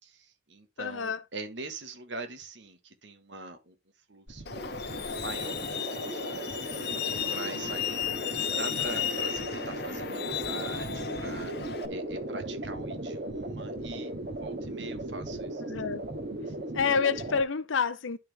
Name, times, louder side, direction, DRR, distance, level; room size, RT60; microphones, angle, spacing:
voice 1, 0.0-3.8 4.1-15.6 16.5-16.6, right 2 dB, 70° right, 1.6 m, -43 dB
voice 2, 0.8-1.2 15.7-16.0 16.7-18.2, left 5 dB, 85° left, 0.7 m, -28 dB
sound 1, 4.3-17.4, right 1 dB, 50° right, 2.3 m, -37 dB
Truck, 4.5-11.9, left 7 dB, 55° left, 1.0 m, -34 dB
11.5 x 4.4 x 3.4 m
head